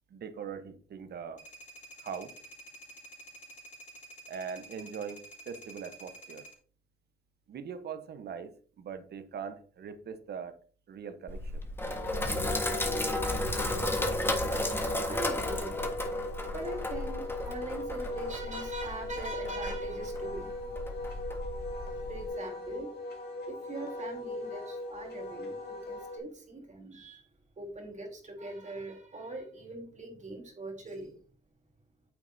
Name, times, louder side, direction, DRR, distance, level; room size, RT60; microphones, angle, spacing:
voice 1, 0.1-1.4 2.0-2.3 4.3-6.5 7.5-10.6 10.9-11.6, right 6 dB, 55° right, 10 dB, 1.0 m, -41 dB
sound 1, 1.4-6.5, right 2 dB, 40° left, 3.8 m, -50 dB
Sink (filling or washing), 11.3-22.3, left 1 dB, 10° left, 1.5 m, -34 dB
Wind instrument woodwind instrument, 12.2-26.2, left 2 dB, 55° left, 2.4 m, -39 dB
voice 2, 15.1-15.8 16.5-20.8 22.1-22.9 23.5-27.3 27.6-31.2, right 2 dB, 35° right, 1 dB, 3.2 m, -42 dB
9.2 x 6.9 x 2.7 m, 0.43 s
cardioid pair, 90°, 20 cm